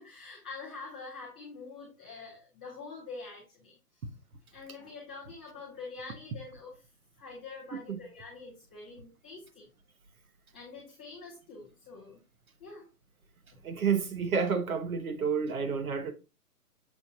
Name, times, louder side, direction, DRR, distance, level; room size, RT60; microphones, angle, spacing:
voice 1, 0.0-4.0 4.5-6.7 7.2-9.7 10.5-12.2 12.6-12.9, left 4 dB, 5° left, 0.5 m, -45 dB
voice 2, 13.6-16.1, right 6 dB, 60° right, 1.4 m, -30 dB
6.9 x 6.2 x 2.7 m
hypercardioid pair, 150°, 47 cm